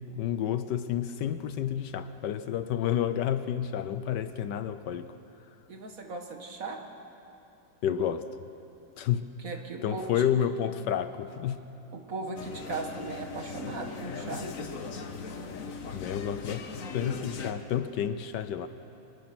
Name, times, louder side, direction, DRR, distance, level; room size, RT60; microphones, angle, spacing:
voice 1, 0.0-5.1 7.8-8.5 9.0-9.3 9.8-11.6 15.9-18.7, left 9 dB, 70° left, 11 dB, 1.2 m, -30 dB
voice 2, 5.7-6.8 9.4-10.2 10.8-10.9 11.9-14.5, right 3 dB, 45° right, 3 dB, 1.9 m, -38 dB
sound 1, 12.4-17.5, left 4 dB, 50° left, 1.3 m, -39 dB
23.5 x 21.0 x 5.9 m, 2.8 s
omnidirectional pair, 2.1 m